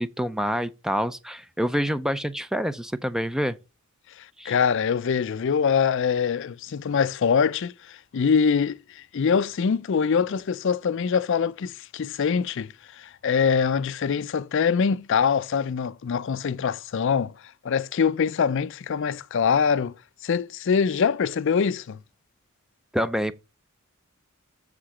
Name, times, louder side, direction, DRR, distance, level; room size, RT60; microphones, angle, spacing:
voice 1, 0.0-3.6 4.4-4.6 22.9-23.3, equal, 5° right, 0.4 m, -27 dB
voice 2, 4.2-17.3 17.6-19.9 20.2-22.0, left 6 dB, 60° left, 0.4 m, -24 dB
6.7 x 4.9 x 5.5 m
head